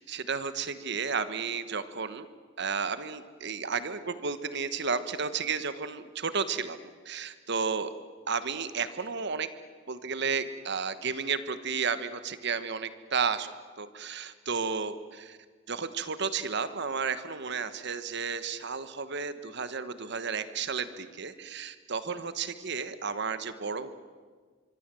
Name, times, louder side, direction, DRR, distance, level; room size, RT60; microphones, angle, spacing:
voice 1, 0.0-2.3 2.6-6.8 7.0-7.9 8.3-9.5 9.9-13.5 13.8-15.4 15.7-23.9, right 5 dB, 60° right, 12 dB, 1.3 m, -32 dB
25.0 x 24.5 x 7.7 m, 1.6 s
head